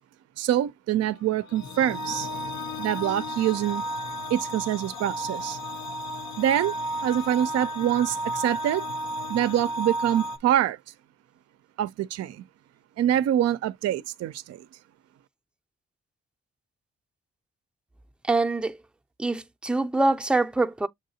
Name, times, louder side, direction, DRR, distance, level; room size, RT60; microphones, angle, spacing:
voice 1, 0.4-2.3 2.8-3.8 4.3-5.6 6.4-6.7 7.0-8.8 9.3-10.8 11.8-12.4 13.0-14.7, right 11 dB, 60° right, 0.4 m, -25 dB
sound 1, 1.3-10.4, equal, 70° left, 0.6 m, -33 dB
voice 2, 18.3-18.8 19.2-20.9, right 2 dB, 5° right, 0.5 m, -24 dB
7.2 x 2.6 x 2.7 m
hypercardioid pair, 40°, 29 cm